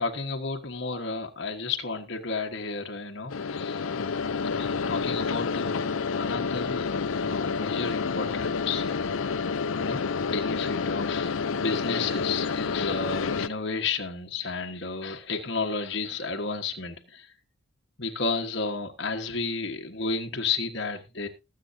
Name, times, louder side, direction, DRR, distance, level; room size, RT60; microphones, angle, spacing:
voice 1, 0.0-3.8 4.5-6.9 7.2-9.1 9.8-17.3 18.0-21.3, left 4 dB, 55° left, 1.5 m, -32 dB
sound 1, 3.3-13.5, left 5 dB, 80° left, 0.6 m, -29 dB
20.0 x 7.7 x 2.8 m
head